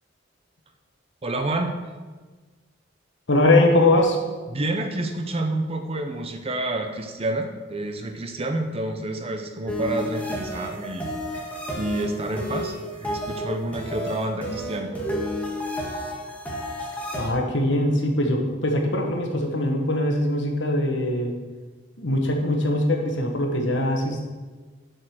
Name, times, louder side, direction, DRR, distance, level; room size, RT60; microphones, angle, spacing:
voice 1, 1.2-1.8 4.5-14.9, right 2 dB, 30° right, 6 dB, 0.7 m, -29 dB
voice 2, 3.3-4.2 17.1-21.3 22.0-24.3, left 1 dB, 65° left, 2 dB, 1.4 m, -22 dB
sound 1, 9.7-17.3, equal, 10° left, 1.6 m, -31 dB
7.5 x 5.4 x 6.2 m, 1.4 s
head